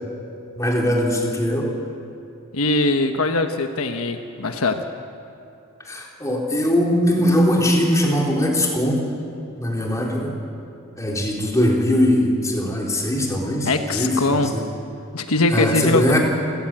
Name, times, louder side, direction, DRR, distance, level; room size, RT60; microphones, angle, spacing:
voice 1, 0.6-1.7 5.8-9.0 9.6-10.4 11.0-14.7 15.5-16.2, left 1 dB, 15° left, -1 dB, 3.8 m, -21 dB
voice 2, 2.5-4.9 13.6-14.5 15.1-16.1, left 2 dB, 75° left, 6 dB, 1.2 m, -21 dB
28.5 x 15.5 x 8.9 m, 2.6 s
head